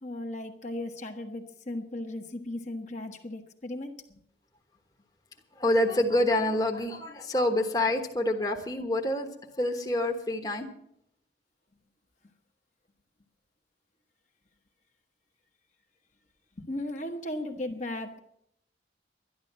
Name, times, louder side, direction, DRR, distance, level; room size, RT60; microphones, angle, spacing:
voice 1, 0.0-4.2 16.6-18.2, left 1 dB, 40° left, 3 dB, 1.2 m, -36 dB
voice 2, 5.5-9.3 9.6-10.7, left 1 dB, 20° left, 2 dB, 1.2 m, -27 dB
12.0 x 11.0 x 7.3 m, 0.74 s
head